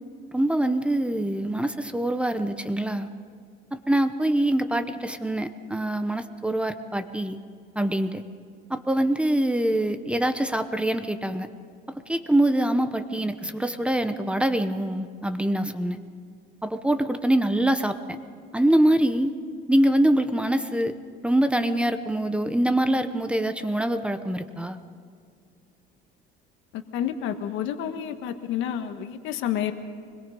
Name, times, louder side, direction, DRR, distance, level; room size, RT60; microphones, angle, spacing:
voice 1, 0.3-3.1 3.7-7.4 7.8-8.2 8.7-11.5 12.1-16.0 16.6-18.0 18.5-19.3 19.7-20.9 21.2-24.8, right 1 dB, 5° right, 9 dB, 0.8 m, -24 dB
voice 2, 26.9-29.7, left 10 dB, 75° left, 7 dB, 1.5 m, -29 dB
25.5 x 21.5 x 5.3 m, 2.2 s
cardioid pair, 140°, 20 cm